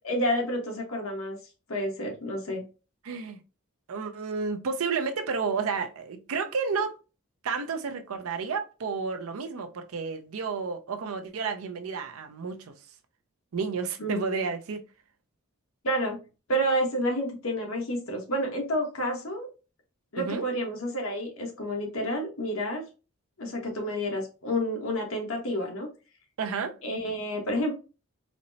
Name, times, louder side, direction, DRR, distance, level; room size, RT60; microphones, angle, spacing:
voice 1, 0.0-1.4 1.7-2.6 14.0-14.3 15.8-16.2 16.5-19.5 20.1-22.8 23.4-25.9 26.8-27.7, equal, 70° left, 1.0 m, -29 dB
voice 2, 3.0-3.4 3.9-7.0 7.4-12.7 13.5-14.8 20.2-20.4 26.4-26.8, right 5 dB, 80° right, 0.5 m, -31 dB
4.2 x 2.0 x 2.6 m
head